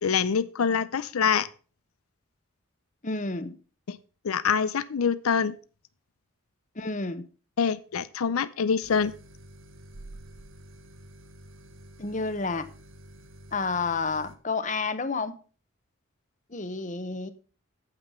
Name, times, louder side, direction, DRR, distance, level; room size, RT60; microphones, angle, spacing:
voice 1, 0.0-1.5 3.9-4.0 4.2-5.5 7.6-9.1, left 6 dB, 90° left, 15 dB, 0.5 m, -25 dB
voice 2, 3.0-3.6 6.8-7.2 12.0-12.6 13.5-15.3 16.5-17.3, left 4 dB, 35° left, 11 dB, 0.9 m, -30 dB
sound 1, 8.8-14.4, right 1 dB, 75° right, 1.3 m, -49 dB
8.8 x 7.9 x 5.5 m, 0.38 s
head